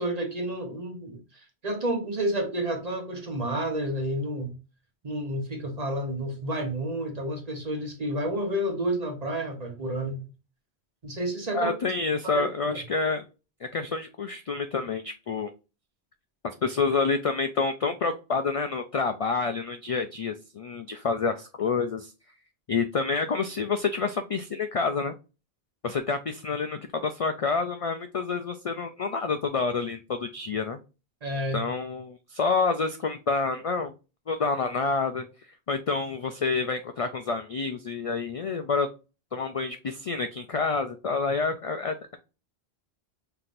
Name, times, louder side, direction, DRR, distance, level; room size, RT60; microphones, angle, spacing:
voice 1, 0.0-4.5 5.0-10.3 11.0-11.7 12.2-12.8 31.2-31.6, right 1 dB, 40° right, 1.1 m, -30 dB
voice 2, 11.5-13.2 13.6-15.5 16.4-22.1 22.7-25.1 25.8-30.8 31.5-33.9 34.3-35.3 35.7-38.9 39.3-42.2, left 4 dB, 60° left, 0.3 m, -28 dB
5.7 x 3.4 x 2.5 m
omnidirectional pair, 1.1 m